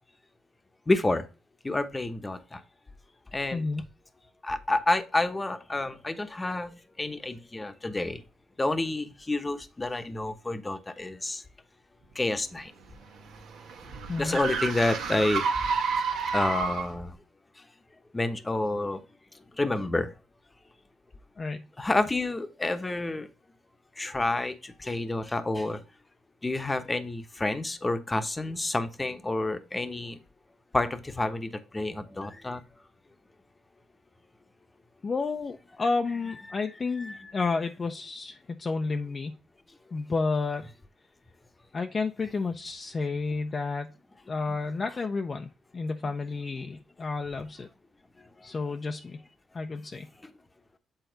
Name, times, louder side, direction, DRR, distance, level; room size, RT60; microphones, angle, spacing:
voice 1, 0.9-1.3 1.6-2.6 3.3-3.6 4.4-8.2 8.6-11.4 12.1-12.7 14.2-15.4 16.3-17.2 18.1-19.0 19.5-20.1 21.8-23.3 24.0-25.8 26.4-30.2 30.7-32.6 37.0-37.3 50.2-50.3, left 2 dB, 20° left, 9 dB, 1.0 m, -29 dB
voice 2, 3.5-3.8 14.1-14.4 21.4-21.6 35.0-39.3 39.9-40.7 41.7-43.9 44.3-47.7 48.4-49.2 49.5-50.1, left 4 dB, 35° left, 4 dB, 0.6 m, -31 dB
sound 1, 12.6-17.1, right 5 dB, 80° right, 1.5 m, -30 dB
8.1 x 4.0 x 3.9 m, 0.31 s
cardioid pair, 90°, 0 cm